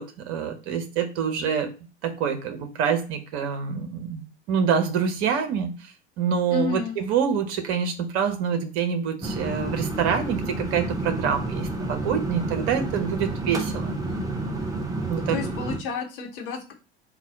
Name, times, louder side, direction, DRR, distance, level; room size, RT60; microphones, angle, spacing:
voice 1, 0.0-1.7 2.0-14.0 15.1-15.4, right 7 dB, 45° right, 6 dB, 0.9 m, -26 dB
voice 2, 6.5-6.9 15.3-16.7, left 5 dB, 55° left, 2 dB, 1.0 m, -30 dB
sound 1, 9.2-15.8, right 2 dB, 10° right, 0.6 m, -30 dB
3.9 x 2.3 x 3.9 m, 0.32 s
figure-of-eight pair, 75°, 33 cm